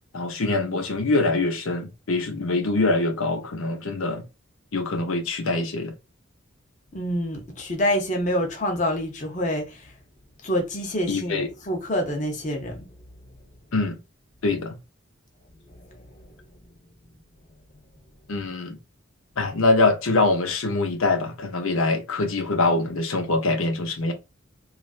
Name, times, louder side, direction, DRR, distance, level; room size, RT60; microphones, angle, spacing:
voice 1, 0.1-4.3 4.7-5.9 11.1-11.5 13.7-14.0 14.4-14.8 18.3-18.8 19.4-24.1, left 2 dB, 85° left, 0.7 m, -24 dB
voice 2, 6.9-9.9 10.4-12.9 15.8-16.0, equal, 35° left, 0.7 m, -27 dB
3.1 x 2.4 x 2.4 m
head